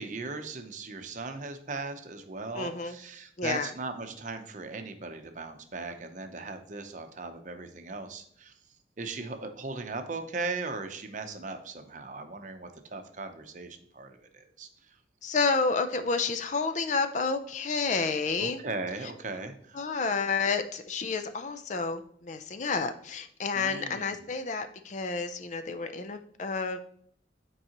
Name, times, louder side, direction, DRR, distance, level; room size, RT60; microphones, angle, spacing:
voice 1, 0.0-8.5 9.0-15.0 18.4-19.8 23.5-24.2, right 3 dB, 45° right, 6 dB, 0.7 m, -38 dB
voice 2, 2.5-3.0 3.4-3.7 15.2-18.6 19.7-26.8, left 4 dB, 45° left, 9 dB, 0.5 m, -30 dB
9.1 x 4.7 x 2.9 m, 0.63 s
head